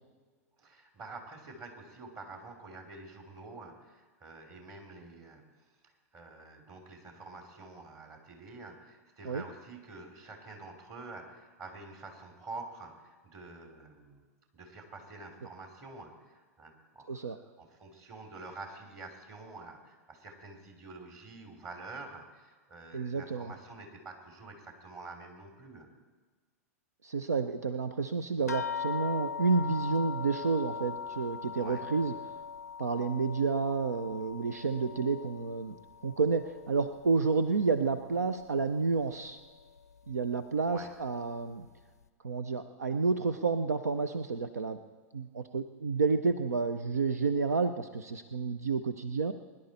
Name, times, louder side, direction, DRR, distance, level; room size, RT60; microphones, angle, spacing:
voice 1, 0.6-14.2 14.5-25.9 31.6-31.8 40.7-40.9, right 3 dB, 35° right, 4 dB, 3.1 m, -48 dB
voice 2, 22.9-23.5 27.0-32.1 32.8-35.7 36.0-39.4 40.1-41.7 42.2-44.8 45.1-49.3, right 4 dB, 80° right, 11 dB, 0.6 m, -30 dB
sound 1, 28.5-37.3 37.6-38.5 39.2-39.3 39.8-39.9, left 6 dB, 85° left, 0.5 m, -40 dB
22.0 x 11.0 x 4.2 m, 1.4 s
figure-of-eight pair, 95°, 8 cm